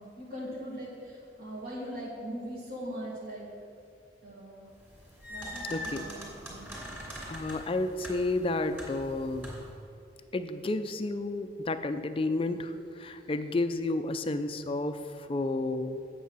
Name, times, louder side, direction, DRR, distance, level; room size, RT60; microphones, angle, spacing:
voice 1, 0.0-3.5 4.2-4.7 5.3-6.7, equal, 50° right, -5 dB, 1.8 m, -40 dB
sound 1, 4.8-9.8, equal, 10° right, 2.6 m, -42 dB
voice 2, 5.7-6.0 7.3-9.5 10.3-16.0, left 2 dB, 30° left, 9 dB, 0.4 m, -31 dB
8.3 x 7.5 x 6.2 m, 2.5 s
head